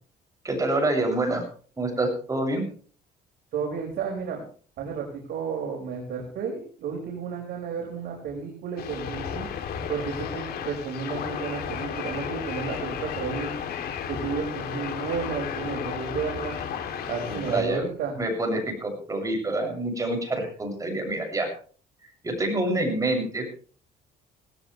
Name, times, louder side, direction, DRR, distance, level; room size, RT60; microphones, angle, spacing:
voice 1, 0.4-1.4 1.8-2.7 17.2-17.8 18.2-21.5 22.2-23.6, right 2 dB, 20° right, 2 dB, 7.6 m, -27 dB
voice 2, 3.5-4.4 4.8-9.5 9.9-13.5 14.1-16.6 17.1-18.2, right 6 dB, 70° right, 0 dB, 5.7 m, -32 dB
sound 1, 8.8-17.6, left 8 dB, 65° left, 3.1 m, -33 dB
18.0 x 17.5 x 3.4 m, 0.43 s
cardioid pair, 110°, 17 cm